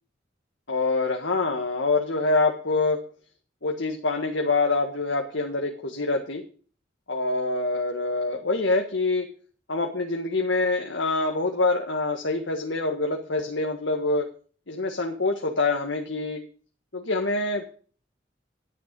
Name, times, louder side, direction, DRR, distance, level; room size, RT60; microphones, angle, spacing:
voice 1, 0.7-3.1 3.6-6.4 7.1-9.3 9.7-14.3 14.7-16.4 16.9-17.7, left 3 dB, 75° left, 2 dB, 1.7 m, -25 dB
11.5 x 9.7 x 5.4 m, 0.41 s
head